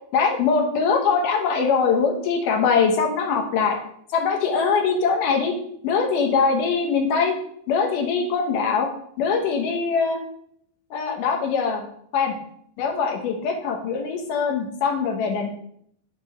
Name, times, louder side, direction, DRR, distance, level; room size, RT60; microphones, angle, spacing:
voice 1, 0.1-3.8 4.1-5.5 5.8-7.3 7.7-8.9 9.2-10.2 10.9-11.9 12.1-12.3 12.8-15.5, left 5 dB, 85° left, 2 dB, 2.6 m, -22 dB
6.7 x 3.0 x 5.6 m, 0.68 s
omnidirectional pair, 3.6 m